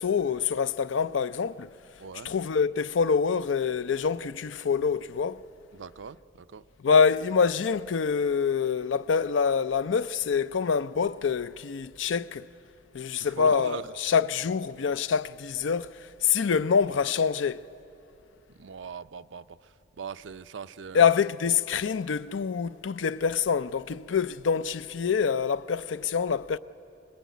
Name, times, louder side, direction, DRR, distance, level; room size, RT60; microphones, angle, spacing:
voice 1, 0.0-1.7 2.2-5.4 6.8-12.5 12.9-17.6 20.9-26.6, left 6 dB, 85° left, 0.5 m, -26 dB
voice 2, 2.0-2.3 5.7-6.6 13.2-13.9 18.6-21.1, right 6 dB, 80° right, 0.5 m, -40 dB
24.0 x 19.5 x 9.3 m
head